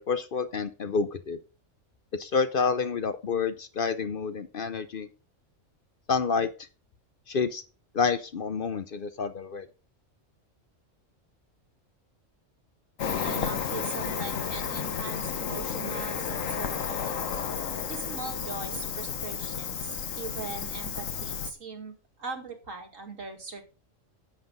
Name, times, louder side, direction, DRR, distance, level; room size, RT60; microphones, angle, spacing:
voice 1, 0.0-1.4 2.1-5.1 6.1-6.5 7.3-7.6 7.9-9.7, left 5 dB, 50° left, 11 dB, 0.7 m, -28 dB
Cricket, 13.0-21.5, left 7 dB, 90° left, 1.4 m, -32 dB
voice 2, 13.2-17.1 17.9-23.6, right 4 dB, 85° right, 3 dB, 2.5 m, -40 dB
10.5 x 7.7 x 3.9 m, 0.34 s
omnidirectional pair, 1.3 m